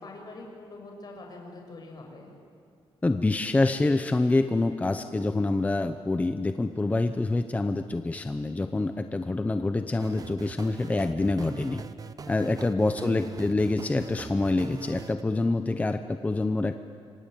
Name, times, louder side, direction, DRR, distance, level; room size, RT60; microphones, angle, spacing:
voice 1, 0.0-2.3 13.0-13.6, left 2 dB, 40° left, 1 dB, 6.5 m, -44 dB
voice 2, 3.0-11.8 12.3-16.8, left 2 dB, 15° left, 8 dB, 0.8 m, -26 dB
sound 1, 10.0-15.2, right 6 dB, 35° right, 0.8 m, -42 dB
27.0 x 24.0 x 9.2 m, 2.5 s
wide cardioid pair, 170°, 10 cm